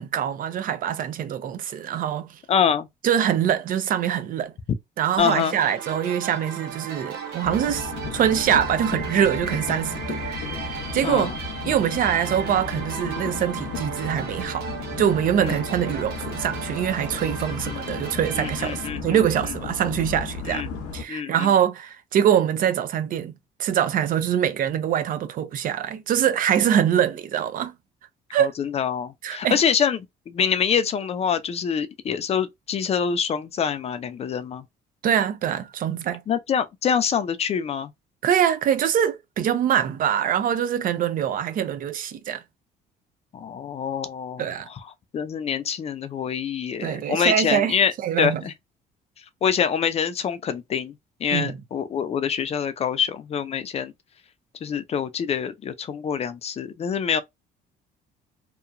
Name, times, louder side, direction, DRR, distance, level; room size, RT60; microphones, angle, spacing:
voice 1, 0.0-2.4 3.0-4.5 5.0-10.2 10.5-11.3 11.6-14.7 15.0-20.7 20.9-27.7 28.3-28.5 29.2-29.6 35.0-36.2 38.2-42.4 44.4-44.7 46.8-48.4 51.3-51.6, right 9 dB, 55° right, 0.5 m, -24 dB
voice 2, 2.5-2.9 5.2-5.5 11.0-11.3 15.4-15.6 17.7-17.8 18.4-19.2 20.5-20.7 21.1-21.5 28.4-30.0 30.3-34.6 36.3-37.9 43.3-44.8 45.1-48.5 49.4-50.9 51.2-53.9 54.6-57.2, left 7 dB, 40° left, 0.4 m, -25 dB
sound 1, 5.2-18.9, right 7 dB, 75° right, 1.0 m, -36 dB
sound 2, 7.4-21.0, left 5 dB, 80° left, 0.7 m, -34 dB
2.8 x 2.2 x 2.5 m
cardioid pair, 110°, 17 cm